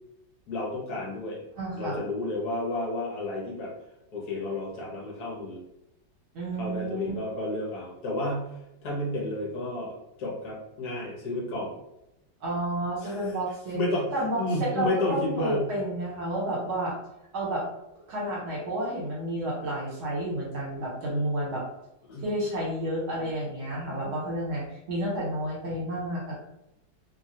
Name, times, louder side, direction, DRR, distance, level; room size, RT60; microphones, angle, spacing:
voice 1, 0.5-1.4 1.7-3.7 4.1-5.6 6.6-8.5 8.8-9.9 10.2-11.7 13.0-13.4 13.7-15.6 22.1-22.2, left 2 dB, 65° left, -3 dB, 1.2 m, -31 dB
voice 2, 1.6-2.0 6.3-7.1 12.4-13.8 14.1-17.0 17.3-17.6 18.1-21.6 22.2-26.3, right 1 dB, 65° right, -4 dB, 1.4 m, -30 dB
3.1 x 2.2 x 2.7 m, 0.87 s
omnidirectional pair, 2.0 m